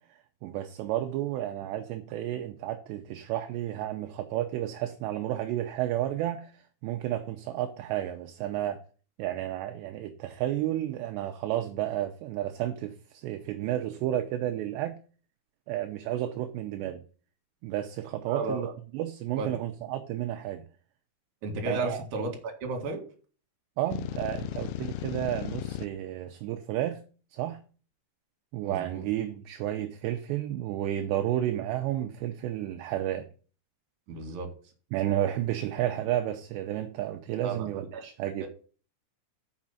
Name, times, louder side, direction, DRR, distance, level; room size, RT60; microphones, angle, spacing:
voice 1, 0.1-6.5 6.8-8.8 9.2-15.0 15.7-17.0 17.6-18.7 18.9-20.6 21.7-22.0 23.8-27.0 27.3-27.6 28.5-33.3 34.9-38.5, right 12 dB, 80° right, 2.6 m, -31 dB
voice 2, 18.3-18.7 19.4-19.6 21.4-23.0 28.6-29.0 34.1-34.5 37.4-37.7 37.9-38.0 38.4-38.5, right 3 dB, 50° right, 3.0 m, -33 dB
sound 1, 23.9-25.9, left 14 dB, 80° left, 2.8 m, -35 dB
7.4 x 6.0 x 7.3 m
omnidirectional pair, 5.6 m